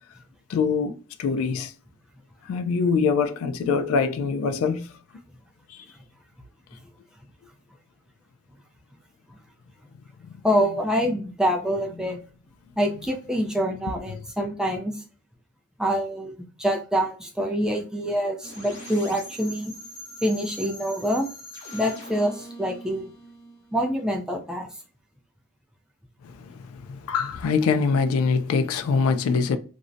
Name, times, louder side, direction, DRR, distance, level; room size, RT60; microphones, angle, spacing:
voice 1, 0.5-1.7 2.4-5.0 5.7-5.9 10.2-10.4 11.1-11.2 12.1-12.2 26.2-29.6, left 5 dB, 80° left, 0.3 m, -24 dB
voice 2, 10.4-12.2 12.8-15.0 15.8-19.7 20.2-21.3 21.7-23.1 23.7-24.7, equal, 5° right, 0.4 m, -26 dB
sound 1, 18.4-24.2, equal, 45° left, 0.9 m, -42 dB
2.5 x 2.1 x 2.5 m
head